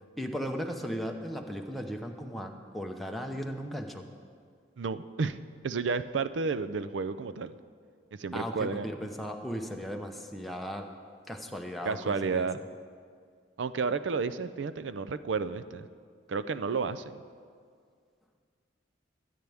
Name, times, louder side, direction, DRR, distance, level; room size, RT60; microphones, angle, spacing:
voice 1, 0.2-4.0 8.3-10.9 11.3-12.5, equal, ahead, 2 dB, 0.7 m, -36 dB
voice 2, 4.8-5.4 5.6-7.5 8.2-8.9 11.8-12.6 13.6-15.9 16.3-17.2, right 4 dB, 80° right, 13 dB, 0.5 m, -31 dB
22.5 x 9.2 x 3.5 m, 2.1 s
head